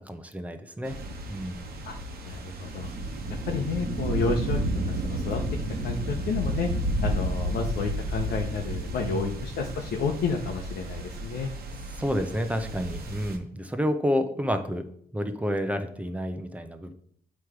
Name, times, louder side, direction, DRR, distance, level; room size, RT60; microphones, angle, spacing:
voice 1, 0.1-1.0 1.3-1.6 9.1-9.3 12.0-14.8 15.1-16.9, equal, 10° right, 7 dB, 0.8 m, -29 dB
sound 1, 0.8-13.4, right 1 dB, 75° right, 1.0 m, -32 dB
voice 2, 2.2-2.9 3.5-4.6 4.8-5.4 5.8-6.7 7.0-11.5, left 5 dB, 85° left, 2 dB, 0.7 m, -30 dB
7.7 x 3.1 x 4.8 m, 0.65 s
cardioid pair, 80°, 16 cm